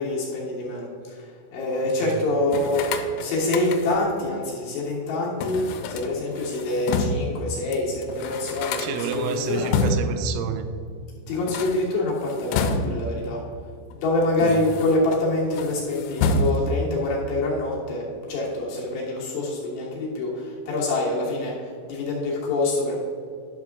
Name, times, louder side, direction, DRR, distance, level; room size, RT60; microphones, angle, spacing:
voice 1, 0.0-2.9 3.2-9.7 11.3-13.4 13.9-23.0, left 2 dB, 65° left, -4 dB, 3.2 m, -26 dB
sound 1, 2.5-4.1 5.4-7.4 7.7-7.8 8.0-10.3 11.3-13.2 13.9-15.2 15.5-16.9, left 3 dB, 85° left, 3.4 m, -28 dB
voice 2, 8.8-10.7 14.4-14.6, right 6 dB, 85° right, 8 dB, 3.3 m, -29 dB
10.5 x 6.6 x 3.5 m, 2.3 s
omnidirectional pair, 5.9 m